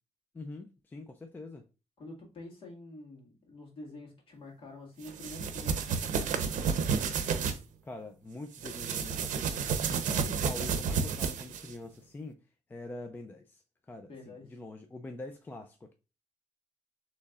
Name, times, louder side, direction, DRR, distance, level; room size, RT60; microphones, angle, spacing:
voice 1, 0.3-1.7 7.8-12.4 12.7-15.9, left 2 dB, 15° left, 0.4 m, -44 dB
voice 2, 2.0-6.7 14.1-14.5, left 2 dB, 45° left, 1.7 m, -47 dB
sound 1, 5.0-7.6 8.5-11.7, right 6 dB, 80° right, 0.6 m, -31 dB
6.3 x 3.1 x 2.3 m
wide cardioid pair, 175°, 13 cm